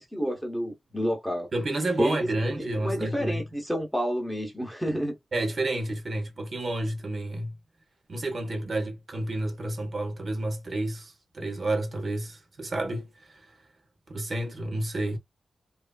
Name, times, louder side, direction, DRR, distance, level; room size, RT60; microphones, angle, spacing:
voice 1, 0.0-1.5 2.0-5.1, equal, ahead, 0.8 m, -29 dB
voice 2, 1.5-3.4 5.3-7.5 8.1-13.5 14.1-15.2, right 1 dB, 45° right, 0.8 m, -30 dB
3.0 x 2.4 x 2.3 m
wide cardioid pair, 130°, 0 cm